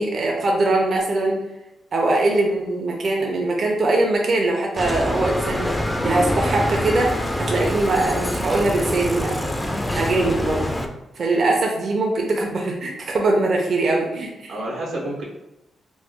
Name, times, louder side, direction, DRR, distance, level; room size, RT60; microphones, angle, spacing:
voice 1, 0.0-1.4 1.9-9.4 9.9-10.6 11.2-14.5, right 2 dB, 55° right, 0 dB, 0.5 m, -22 dB
Bicycle, 4.8-10.9, left 1 dB, 15° left, 0.4 m, -25 dB
voice 2, 14.5-15.2, right 1 dB, 85° right, -3 dB, 0.8 m, -30 dB
3.0 x 2.0 x 3.6 m, 0.92 s
cardioid pair, 85°, 0 cm